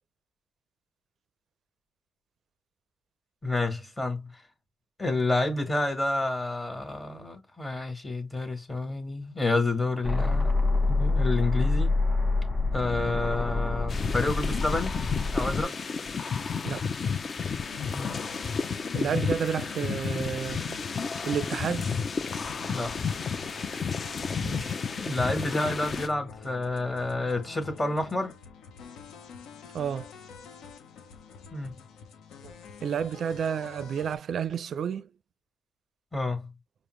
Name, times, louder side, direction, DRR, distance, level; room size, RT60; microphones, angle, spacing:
voice 1, 3.4-4.4 5.0-10.5 10.9-11.9 12.7-15.0 15.3-15.8 17.9-18.2 22.6-23.0 25.0-28.4 31.5-31.8 36.1-36.5, left 2 dB, 25° left, 1.4 m, -29 dB
sound 1, 10.0-15.6, left 3 dB, 5° left, 1.1 m, -26 dB
sound 2, 13.9-26.1, left 5 dB, 40° left, 0.5 m, -32 dB
sound 3, 17.6-34.2, left 6 dB, 90° left, 0.7 m, -47 dB
voice 2, 18.9-20.8 21.3-22.0 24.4-24.8 29.7-30.1 32.4-32.5 32.8-35.1, right 7 dB, 60° right, 0.4 m, -31 dB
5.0 x 2.0 x 3.1 m
cardioid pair, 90°, 0 cm